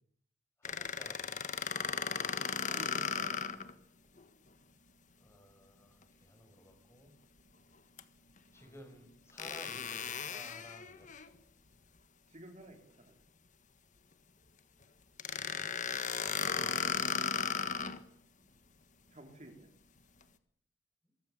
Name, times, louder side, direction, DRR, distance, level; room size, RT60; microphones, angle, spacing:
voice 1, 0.6-1.4 5.2-7.1 8.5-11.1 16.2-16.9 21.0-21.1, left 1 dB, 15° left, 5 dB, 6.2 m, -55 dB
sound 1, 0.7-3.7 4.2-4.3 8.0-8.1 9.4-11.3 15.2-18.0, left 7 dB, 45° left, 1.5 m, -36 dB
voice 2, 2.7-3.7 12.3-13.2 19.1-19.7, right 1 dB, 40° right, 4 dB, 3.7 m, -52 dB
23.5 x 23.0 x 7.5 m, 0.66 s
head